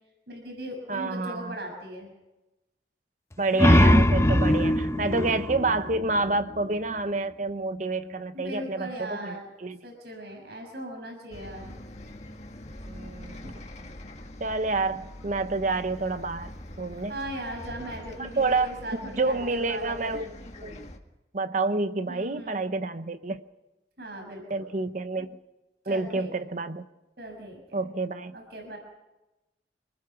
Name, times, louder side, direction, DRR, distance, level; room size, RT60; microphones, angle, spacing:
voice 1, 0.3-2.1 8.3-9.4 9.8-11.8 13.4-13.6 17.1-20.3 22.0-22.7 24.0-24.6 25.2-25.3 25.8-26.3 27.2-27.9 28.3-28.8, right 1 dB, 65° right, 2 dB, 6.4 m, -39 dB
voice 2, 0.9-1.6 3.4-9.8 12.9-13.4 14.4-16.5 16.8-17.1 18.2-18.8 19.2-20.3 20.6-20.7 21.3-23.4 24.5-25.4 25.9-26.9 27.7-28.4, right 3 dB, 45° right, 11 dB, 0.8 m, -28 dB
sound 1, 3.3-6.7, left 1 dB, 15° left, 0.8 m, -22 dB
Bus, 11.3-21.0, left 1 dB, 40° left, 1.9 m, -43 dB
26.0 x 20.0 x 5.9 m, 1.0 s
head